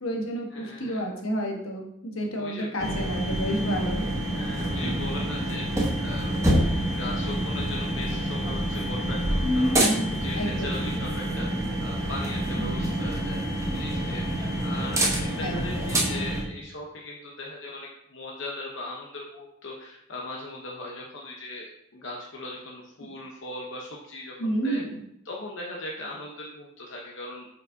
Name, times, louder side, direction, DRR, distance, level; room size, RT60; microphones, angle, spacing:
voice 1, 0.0-4.0 9.4-10.8 12.6-12.9 15.4-16.0 23.0-23.1 24.4-24.9, equal, 85° left, 1 dB, 1.2 m, -30 dB
voice 2, 0.5-1.0 2.3-2.7 4.3-9.8 10.1-13.4 13.7-24.8 25.2-27.5, left 2 dB, 65° left, -2 dB, 0.9 m, -39 dB
sound 1, 2.8-16.4, right 1 dB, 15° right, 1.0 m, -27 dB
8.0 x 5.0 x 2.7 m, 0.75 s
head